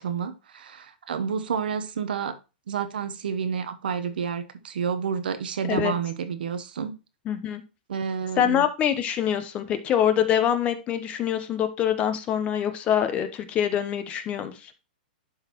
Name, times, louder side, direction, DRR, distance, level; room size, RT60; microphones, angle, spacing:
voice 1, 0.0-2.4 2.7-7.0 7.9-8.6, right 6 dB, 85° right, 1.0 m, -29 dB
voice 2, 7.3-7.6 8.4-14.7, left 9 dB, 25° left, 0.8 m, -25 dB
11.0 x 4.0 x 3.0 m
hypercardioid pair, 145°, 5 cm